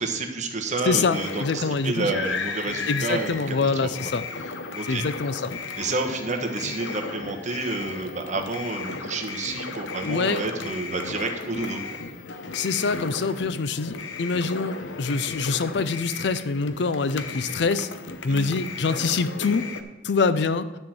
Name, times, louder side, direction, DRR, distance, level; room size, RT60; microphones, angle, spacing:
voice 1, 0.0-3.7 4.0-4.1 4.7-5.0 5.7-12.0 18.3-18.6, right 3 dB, 40° right, 4 dB, 1.2 m, -30 dB
voice 2, 0.8-2.1 2.9-4.3 4.9-5.5 10.0-10.5 12.5-17.9 18.2-19.7 20.0-20.7, left 4 dB, 65° left, 14 dB, 0.5 m, -25 dB
sound 1, 1.1-19.8, left 4 dB, 85° left, 0.8 m, -35 dB
10.5 x 4.4 x 7.8 m, 1.1 s
head